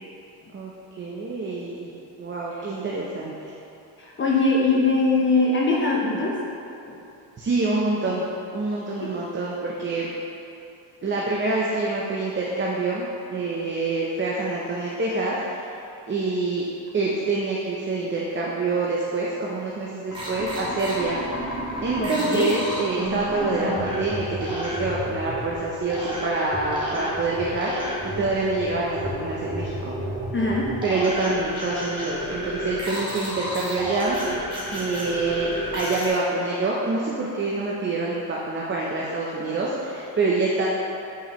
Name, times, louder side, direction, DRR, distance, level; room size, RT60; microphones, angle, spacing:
voice 1, 1.0-1.9 2.2-3.3 7.4-8.3 8.5-10.1 11.0-15.7 16.1-16.6 16.9-21.2 21.8-30.0 30.8-34.2 34.7-40.7, right 3 dB, 25° right, -4 dB, 0.7 m, -26 dB
voice 2, 4.0-6.4 6.9-7.0 9.0-9.1 22.0-22.5 30.3-30.8, left 3 dB, 25° left, -3 dB, 0.7 m, -22 dB
sound 1, 20.1-36.1, equal, 10° right, 1.5 m, -31 dB
9.1 x 4.7 x 3.0 m, 2.7 s
cardioid pair, 130°, 46 cm